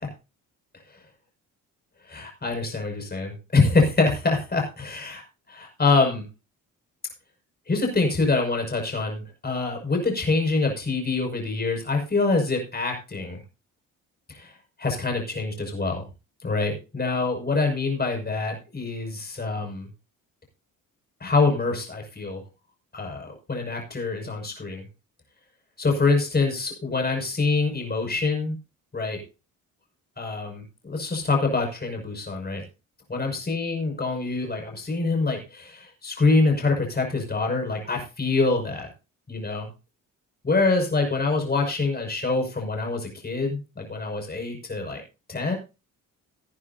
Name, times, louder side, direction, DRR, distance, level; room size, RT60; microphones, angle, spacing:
voice 1, 2.1-5.2 5.5-6.3 7.7-13.4 14.3-14.5 14.8-16.0 16.4-19.9 21.2-22.4 22.9-24.8 25.8-28.6 28.9-29.2 30.2-32.6 33.1-38.9 39.3-39.6 40.4-45.0 45.3-45.5, left 3 dB, 30° left, 2 dB, 6.1 m, -25 dB
18.0 x 9.8 x 2.8 m, 0.29 s
supercardioid pair, 75°, 34 cm